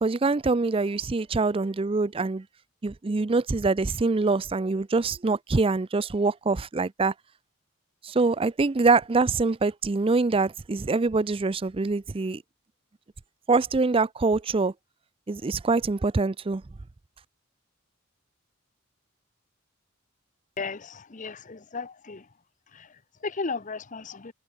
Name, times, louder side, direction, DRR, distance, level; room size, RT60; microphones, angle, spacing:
voice 1, 0.0-2.4 2.8-7.1 8.0-12.4 13.5-14.7 15.3-16.6, right 3 dB, 25° right, 0.4 m, -24 dB
voice 2, 20.6-22.3 22.7-24.3, left 4 dB, 35° left, 0.8 m, -35 dB
head